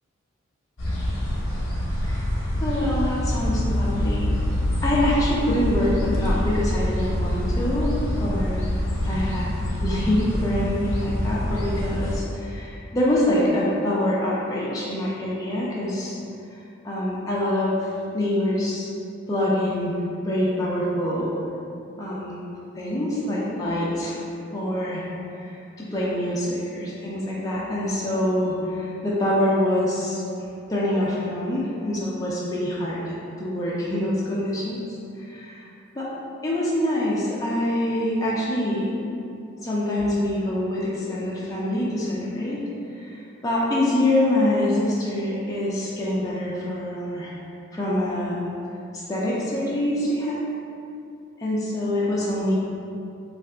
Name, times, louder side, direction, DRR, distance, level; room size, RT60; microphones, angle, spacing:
sound 1, 0.8-12.2, left 1 dB, 65° left, 0.7 m, -25 dB
voice 1, 2.6-4.3 4.8-8.7 9.0-9.5 9.8-16.1 16.5-16.6 16.8-18.9 19.3-19.9 20.2-21.3 22.0-22.4 22.8-24.2 24.5-25.0 25.3-30.2 30.7-34.8 35.2-35.6 35.9-36.1 36.4-38.9 39.6-42.6 43.0-47.4 47.7-48.4 48.9-50.4 51.4-52.5, left 1 dB, 15° left, -7 dB, 0.4 m, -25 dB
2.7 x 2.5 x 3.3 m, 2.6 s
head